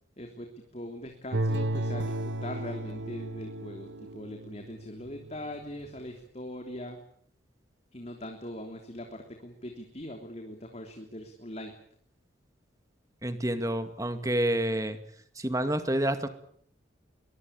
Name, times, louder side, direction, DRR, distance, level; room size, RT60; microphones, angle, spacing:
voice 1, 0.2-7.0 7.9-11.7, left 1 dB, 35° left, 4 dB, 3.3 m, -41 dB
sound 1, 1.3-5.3 5.9-6.0, right 1 dB, 70° right, 1.1 m, -33 dB
voice 2, 13.2-15.0 15.4-16.3, right 1 dB, 15° right, 9 dB, 2.2 m, -28 dB
23.0 x 23.0 x 8.7 m, 0.63 s
head